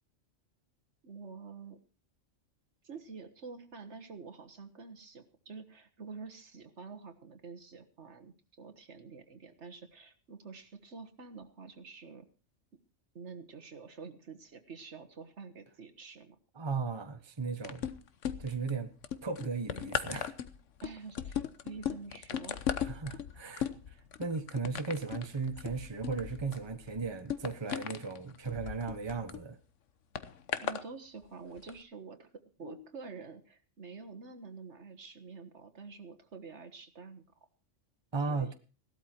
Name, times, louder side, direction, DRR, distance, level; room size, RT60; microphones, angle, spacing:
voice 1, 1.0-1.8 2.8-12.3 13.2-16.4 20.8-22.6 30.6-37.2 38.3-38.5, right 4 dB, 60° right, 7 dB, 1.8 m, -48 dB
voice 2, 16.5-17.9 18.4-18.9 19.2-20.3 22.8-29.6 32.6-32.8 38.1-38.5, right 4 dB, 20° right, 8 dB, 1.2 m, -36 dB
sound 1, 17.6-18.7 19.0-29.4 30.2-30.8 31.6-31.7, left 8 dB, 70° left, 1.3 m, -37 dB
17.0 x 12.5 x 4.5 m, 0.36 s
omnidirectional pair, 1.3 m